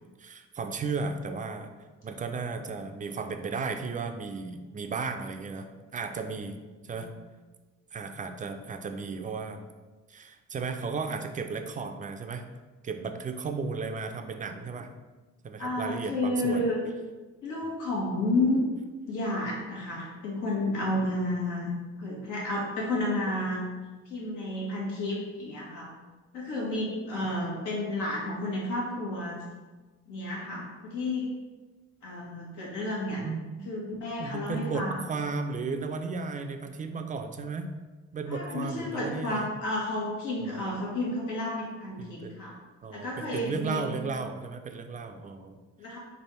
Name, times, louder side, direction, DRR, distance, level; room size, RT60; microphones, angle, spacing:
voice 1, 0.2-1.7 2.0-5.7 5.9-6.6 6.9-7.1 7.9-9.7 10.1-12.4 12.8-14.9 15.4-16.6 33.2-33.7 34.2-37.7 38.1-39.5 40.5-40.6 42.0-42.4 42.8-45.6, right 4 dB, 25° right, 6 dB, 0.4 m, -34 dB
voice 2, 15.6-16.8 17.4-18.6 19.1-23.6 24.1-25.9 26.3-29.4 30.1-31.3 32.0-33.2 33.6-35.0 38.3-42.5 42.9-43.8 45.8-46.0, left 1 dB, 85° left, -4 dB, 1.3 m, -31 dB
3.3 x 2.5 x 4.3 m, 1.3 s
cardioid pair, 90°, 30 cm